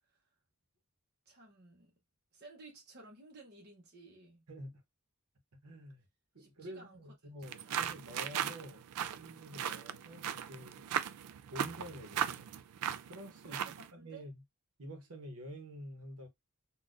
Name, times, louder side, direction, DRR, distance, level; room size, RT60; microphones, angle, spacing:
voice 1, 1.3-1.9 2.3-4.5 6.4-7.0 7.6-7.8 13.4-14.3, right 3 dB, 45° right, 0.9 m, -55 dB
voice 2, 4.5-4.8 5.6-6.0 6.3-8.8 9.2-10.8 11.5-12.5 13.0-14.4 14.8-16.3, equal, 70° right, 1.0 m, -48 dB
sound 1, 7.4-13.9, right 9 dB, 90° right, 0.3 m, -38 dB
3.8 x 2.4 x 2.5 m
head